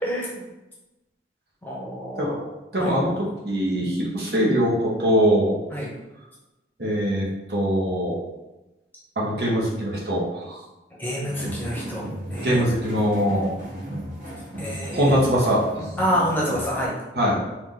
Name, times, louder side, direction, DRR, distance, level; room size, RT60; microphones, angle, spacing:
voice 1, 0.0-0.5 1.6-2.4 2.8-3.0 5.7-5.9 11.0-12.0 12.3-12.6 14.6-15.2 16.0-16.9, equal, 10° left, -5 dB, 0.8 m, -27 dB
voice 2, 2.2-3.1 3.4-5.5 6.8-8.2 9.2-10.6 12.4-13.5 14.9-15.6 17.1-17.4, equal, 65° right, -4 dB, 1.2 m, -22 dB
sound 1, 11.2-16.9, equal, 50° right, 1.2 m, -35 dB
4.6 x 2.6 x 3.8 m, 1.0 s
head